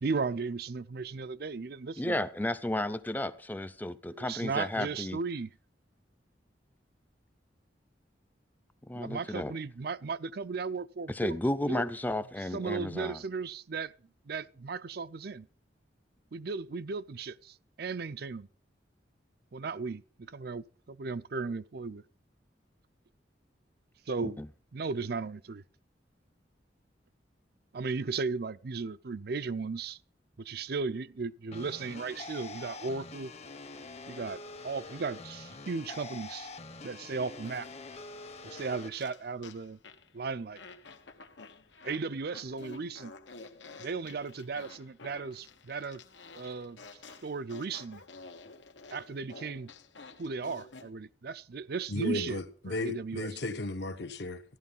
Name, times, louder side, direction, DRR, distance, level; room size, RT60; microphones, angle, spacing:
voice 1, 0.0-2.2 4.1-5.5 8.9-11.4 11.7-11.9 12.5-13.9 14.3-15.5 16.3-18.5 19.5-22.0 24.1-24.4 24.7-25.6 27.7-30.0 30.4-33.3 34.1-36.5 36.8-37.7 38.4-39.8 40.1-40.6 41.8-43.1 43.8-46.0 46.3-46.8 47.2-48.0 48.9-49.7 50.2-52.4 52.7-53.3, right 4 dB, 60° right, 0.5 m, -36 dB
voice 2, 2.0-5.2 8.9-9.5 11.1-13.2 24.2-24.5, left 1 dB, 10° left, 0.6 m, -33 dB
sound 1, 31.5-38.9, left 3 dB, 35° left, 1.0 m, -45 dB
Fart, 37.4-40.1 40.6-50.9, left 4 dB, 85° left, 1.4 m, -51 dB
voice 3, 51.9-54.4, left 2 dB, 65° left, 1.2 m, -34 dB
14.0 x 11.5 x 5.4 m
head